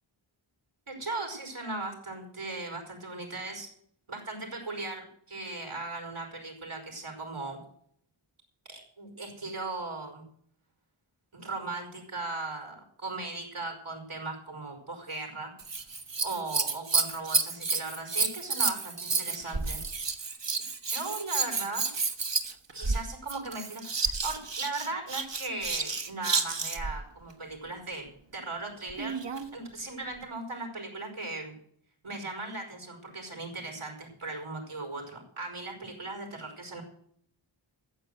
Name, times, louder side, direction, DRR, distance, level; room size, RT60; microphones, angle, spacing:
voice 1, 0.9-3.7 4.1-7.6 8.7-10.2 11.3-15.5 16.2-19.8 20.8-21.9 22.7-29.2 29.5-31.5 32.0-36.8, right 3 dB, 90° right, 1 dB, 5.1 m, -38 dB
Scissors, 15.6-27.0 28.9-29.5 30.2-30.3, right 4 dB, 60° right, 1.4 m, -30 dB
14.5 x 7.8 x 7.8 m, 0.65 s
wide cardioid pair, 45°, 48 cm